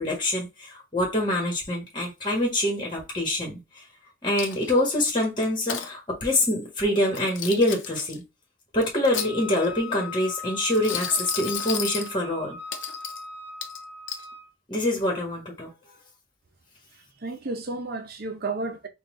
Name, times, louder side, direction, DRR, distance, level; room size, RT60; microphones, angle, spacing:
voice 1, 0.0-3.6 4.2-8.2 8.7-12.6 14.7-15.7, left 1 dB, 25° left, 1.4 m, -25 dB
Coin (dropping), 4.4-4.9 5.4-5.9 7.0-8.2 8.8-9.7 10.7-12.1 12.7-13.2 13.6-14.3, left 8 dB, 80° left, 0.8 m, -33 dB
Wind instrument woodwind instrument, 9.1-14.5, left 4 dB, 65° left, 1.0 m, -39 dB
voice 2, 16.9-18.9, right 3 dB, 55° right, 0.7 m, -32 dB
4.2 x 2.4 x 3.7 m
head